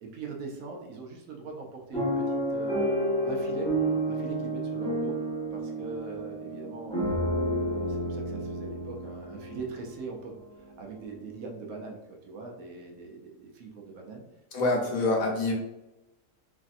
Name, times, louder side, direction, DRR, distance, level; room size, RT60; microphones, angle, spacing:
voice 1, 0.0-2.9 3.2-3.7 4.1-5.2 5.5-7.2 7.6-14.2, right 4 dB, 70° right, 1 dB, 1.0 m, -41 dB
sound 1, 1.9-10.0 10.6-10.7 11.0-11.3, right 1 dB, 5° left, 0.9 m, -30 dB
voice 2, 14.5-15.5, left 2 dB, 70° left, -2 dB, 1.2 m, -26 dB
3.2 x 2.6 x 2.4 m, 0.98 s
omnidirectional pair, 1.6 m